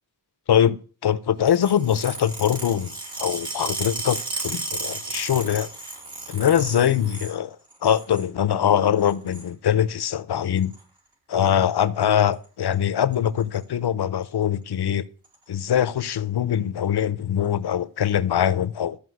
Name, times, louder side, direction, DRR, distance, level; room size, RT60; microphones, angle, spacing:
voice 1, 1.0-5.7 6.3-7.6 7.8-10.7 11.3-15.1 15.5-19.0, left 9 dB, 70° left, 0.8 m, -22 dB
sound 1, 1.4-7.3 7.7-8.3 9.0-9.5 10.6-10.8 11.8-12.0 12.3-12.4 12.7-12.8 13.1-13.6 14.2-14.3 15.2-15.3, right 2 dB, 85° right, 5.0 m, -34 dB
13.0 x 5.4 x 7.9 m
wide cardioid pair, 85°, 40 cm